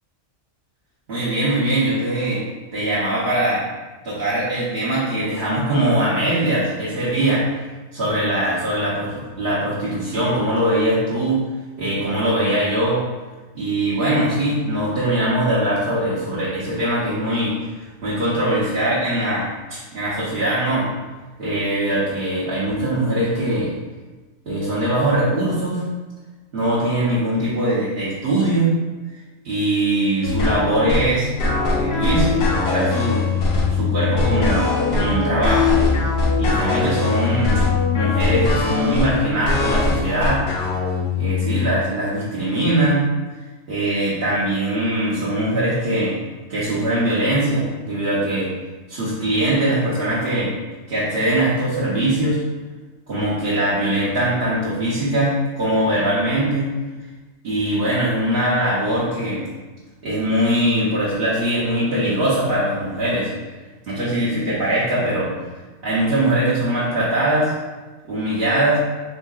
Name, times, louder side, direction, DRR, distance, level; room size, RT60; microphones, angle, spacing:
voice 1, 1.1-2.4 2.7-3.6 4.0-7.4 7.9-11.4 11.8-13.0 13.5-20.9 21.4-23.7 24.5-25.8 26.5-28.7 29.4-33.2 33.7-35.8 36.4-37.6 37.9-40.4 41.2-43.1 43.7-46.1 46.5-48.5 48.9-50.5 50.9-52.4 53.1-56.7 57.4-59.5 60.0-63.3 63.9-65.3 65.8-67.5 68.1-68.8, right 1 dB, 50° right, -9 dB, 1.0 m, -21 dB
sound 1, 30.2-41.7, left 4 dB, 55° left, 0.8 m, -21 dB
3.7 x 3.7 x 2.4 m, 1.2 s
omnidirectional pair, 1.4 m